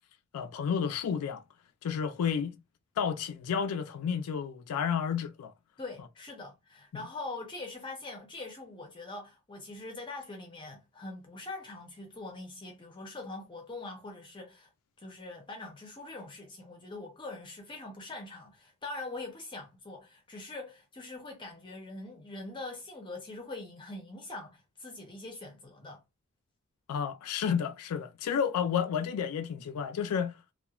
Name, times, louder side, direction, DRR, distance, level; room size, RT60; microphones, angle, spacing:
voice 1, 0.3-1.4 1.8-2.6 3.0-5.5 26.9-30.3, left 7 dB, 75° left, 0.3 m, -31 dB
voice 2, 5.8-14.7 15.0-26.0, left 2 dB, 20° left, 0.5 m, -43 dB
2.9 x 2.1 x 2.3 m
head